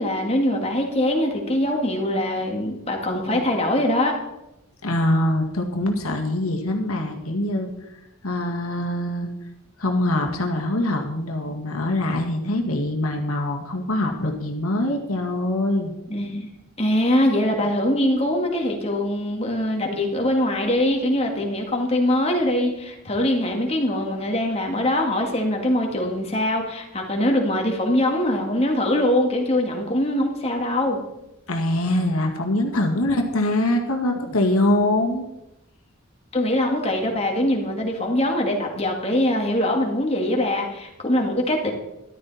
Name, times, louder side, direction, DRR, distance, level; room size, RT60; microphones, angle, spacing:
voice 1, 0.0-4.1 16.1-16.5 16.8-31.0 36.3-41.7, left 1 dB, 30° left, 1 dB, 2.1 m, -22 dB
voice 2, 4.8-7.7 8.2-9.3 9.8-15.9 31.5-35.3, left 1 dB, 85° left, 2 dB, 1.9 m, -23 dB
13.5 x 12.0 x 4.3 m, 0.92 s
head